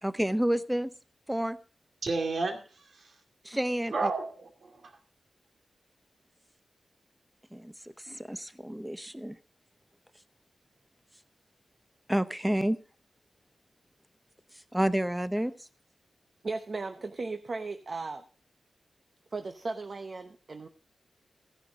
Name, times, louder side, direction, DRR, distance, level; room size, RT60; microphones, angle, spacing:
voice 1, 0.0-0.9 1.3-1.6 3.4-4.1 7.5-9.4 12.1-12.8 14.7-15.7, right 1 dB, 5° right, 13 dB, 0.7 m, -30 dB
voice 2, 2.0-3.1 3.9-4.9, right 3 dB, 65° right, 4 dB, 2.5 m, -32 dB
voice 3, 16.4-18.2 19.3-20.7, right 3 dB, 40° right, 8 dB, 0.8 m, -36 dB
15.5 x 9.9 x 3.9 m, 0.38 s
wide cardioid pair, 155°, 0 cm